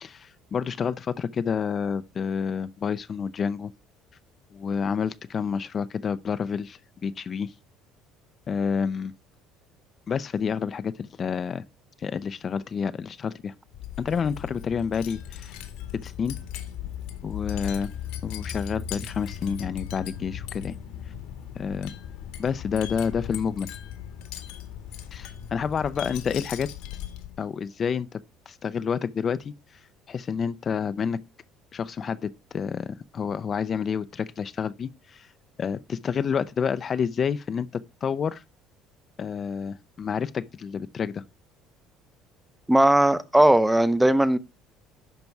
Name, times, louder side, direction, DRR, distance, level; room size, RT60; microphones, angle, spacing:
voice 1, 0.0-3.7 4.5-7.5 8.5-9.1 10.1-11.6 12.0-13.5 14.0-15.6 15.9-16.4 17.2-17.9 18.2-20.8 21.6-21.9 22.4-23.7 25.1-26.7 27.4-28.2 28.5-29.5 30.1-31.2 31.7-35.3 35.6-38.4 39.2-41.2, left 6 dB, 35° left, 0.5 m, -29 dB
Wind chime, 13.7-27.5, left 10 dB, 85° left, 2.0 m, -37 dB
voice 2, 42.7-44.4, right 1 dB, 5° right, 0.7 m, -18 dB
11.0 x 5.9 x 4.6 m
cardioid pair, 125°, 0 cm